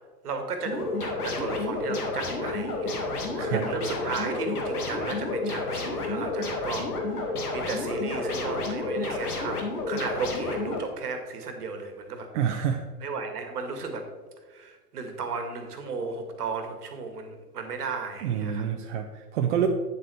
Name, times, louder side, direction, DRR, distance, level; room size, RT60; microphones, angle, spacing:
voice 1, 0.2-3.0 3.5-12.3 13.0-14.1 14.5-18.7, right 4 dB, 65° right, 6 dB, 1.7 m, -34 dB
sound 1, 0.7-10.8, left 2 dB, 65° left, 1.9 m, -30 dB
voice 2, 3.3-3.7 12.3-12.8 18.2-19.7, right 9 dB, 50° right, 4 dB, 0.7 m, -27 dB
9.5 x 7.3 x 3.3 m, 1.4 s
figure-of-eight pair, 100°, 48 cm